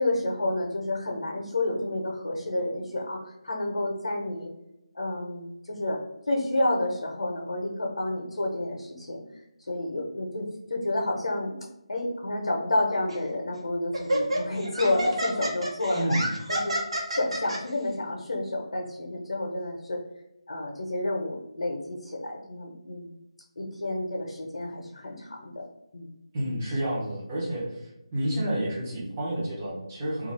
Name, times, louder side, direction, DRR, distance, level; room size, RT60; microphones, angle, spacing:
voice 1, 0.0-4.5 4.9-6.0 6.3-9.2 9.7-11.6 11.9-16.0 16.5-16.8 17.1-20.0 20.5-23.2 23.6-25.6 25.9-26.1, left 1 dB, 70° left, -1 dB, 0.6 m, -30 dB
Laughter, 13.1-13.3 13.9-17.6, right 1 dB, 70° right, 0.9 m, -29 dB
voice 2, 15.9-16.3 26.3-30.3, right 1 dB, 15° right, -7 dB, 0.6 m, -30 dB
2.3 x 2.3 x 3.2 m, 0.90 s
figure-of-eight pair, 170°, 3 cm